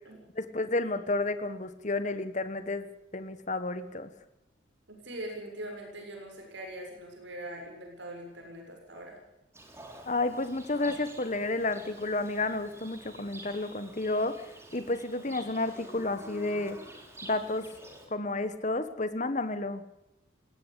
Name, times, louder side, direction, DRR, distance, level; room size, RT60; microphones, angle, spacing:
voice 1, 0.3-2.9 3.1-4.1 10.1-14.4 14.7-16.8 17.2-17.7 18.1-19.8, left 2 dB, 40° left, 11 dB, 1.4 m, -31 dB
voice 2, 4.9-9.2, right 1 dB, 70° right, 1 dB, 7.0 m, -42 dB
Livestock farm animals working animals, 9.5-18.1, right 1 dB, 15° right, 4.0 m, -49 dB
19.5 x 16.5 x 8.4 m, 0.92 s
head